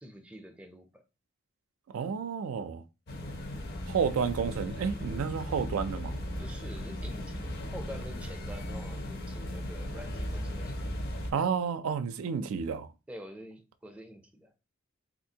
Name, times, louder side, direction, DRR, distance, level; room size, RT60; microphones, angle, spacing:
voice 1, 0.0-1.0 6.4-10.9 13.1-14.5, equal, 5° right, 0.4 m, -47 dB
voice 2, 1.9-2.8 3.9-6.2 11.3-12.9, right 6 dB, 90° right, 0.3 m, -31 dB
sound 1, 3.1-11.3, equal, 50° left, 0.7 m, -37 dB
3.5 x 2.5 x 2.7 m
head